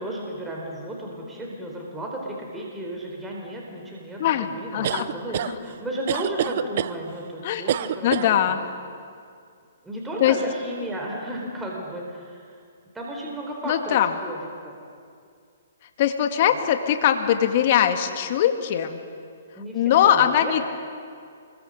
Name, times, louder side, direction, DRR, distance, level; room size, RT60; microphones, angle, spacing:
voice 1, 0.0-8.6 9.8-12.5 12.9-14.8 19.5-20.5, right 1 dB, 10° right, -2 dB, 4.3 m, -34 dB
voice 2, 4.7-5.1 7.4-7.6 8.0-8.6 10.2-10.4 13.7-14.1 16.0-19.0 19.7-20.6, left 10 dB, 50° left, 7 dB, 2.1 m, -21 dB
sound 1, 4.8-5.5 6.1-6.9 7.7-8.3, right 11 dB, 50° right, 0.8 m, -26 dB
27.0 x 22.5 x 6.6 m, 2.3 s
hypercardioid pair, 140°, 0 cm